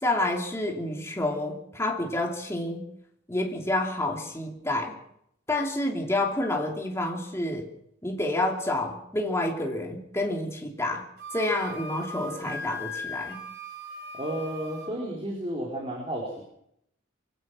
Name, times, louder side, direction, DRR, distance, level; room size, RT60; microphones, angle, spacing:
voice 1, 0.0-2.8 3.3-4.9 5.5-7.7 8.0-11.0 11.3-13.4, left 1 dB, 15° left, 1 dB, 2.8 m, -29 dB
Wind instrument woodwind instrument, 11.2-14.9, left 1 dB, 55° right, 4.1 m, -38 dB
voice 2, 14.1-16.4, right 1 dB, 25° right, -2 dB, 4.3 m, -32 dB
24.0 x 17.5 x 6.2 m, 0.73 s
head